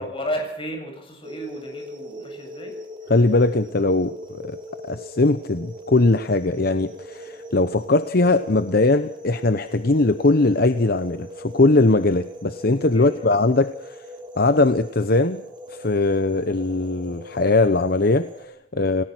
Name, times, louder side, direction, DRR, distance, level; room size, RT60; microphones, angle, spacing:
voice 1, 0.0-2.8 12.9-13.4, equal, 30° left, 7.7 m, -33 dB
sound 1, 1.2-18.4, equal, 25° right, 3.9 m, -40 dB
sound 2, 1.6-17.5, equal, 15° left, 7.0 m, -52 dB
voice 2, 3.1-14.0 14.4-19.0, left 2 dB, 55° left, 0.9 m, -20 dB
29.5 x 18.0 x 6.2 m
head